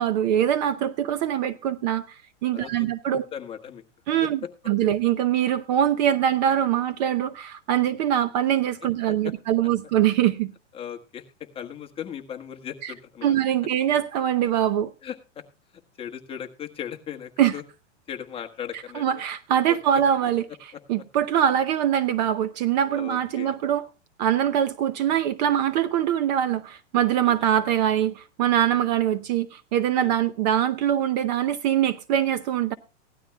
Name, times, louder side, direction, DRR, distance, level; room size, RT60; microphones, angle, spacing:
voice 1, 0.0-3.2 4.1-4.4 4.7-10.5 12.8-12.9 13.2-14.9 17.4-17.5 18.9-23.8 24.2-32.7, right 10 dB, 35° right, 0.7 m, -23 dB
voice 2, 2.5-3.8 9.1-9.3 10.7-11.2 11.5-13.3 15.0-15.4 16.0-17.6 18.1-19.0 19.7-20.3 22.9-23.5 27.2-27.3 29.9-30.1, left 9 dB, 15° left, 1.4 m, -37 dB
17.0 x 12.5 x 2.3 m
hypercardioid pair, 155°, 37 cm